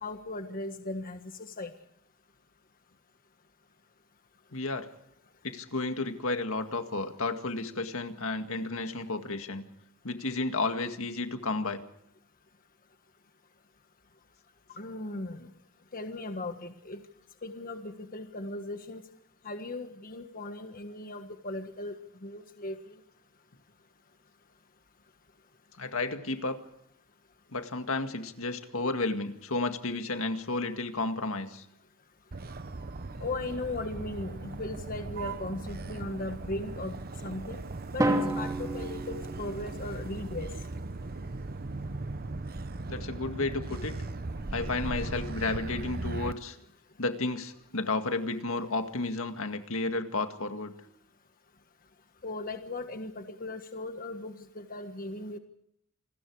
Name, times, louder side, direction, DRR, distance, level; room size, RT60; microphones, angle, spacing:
voice 1, 0.0-1.7 14.8-15.5 15.9-17.0 17.4-19.0 19.4-22.0 22.2-22.8 33.2-36.9 37.2-37.6 37.9-40.5 52.2-55.4, left 2 dB, 40° left, 7 dB, 1.5 m, -37 dB
voice 2, 4.5-4.9 5.4-9.6 10.0-11.8 25.8-26.6 27.5-31.7 42.9-44.0 44.5-46.6 47.0-50.7, left 3 dB, 65° left, 7 dB, 2.0 m, -32 dB
Motor vehicle (road), 32.3-46.3, right 2 dB, 45° right, 0.9 m, -38 dB
Drum, 38.0-40.0, right 1 dB, 15° right, 2.8 m, -30 dB
28.5 x 20.0 x 4.8 m, 0.72 s
head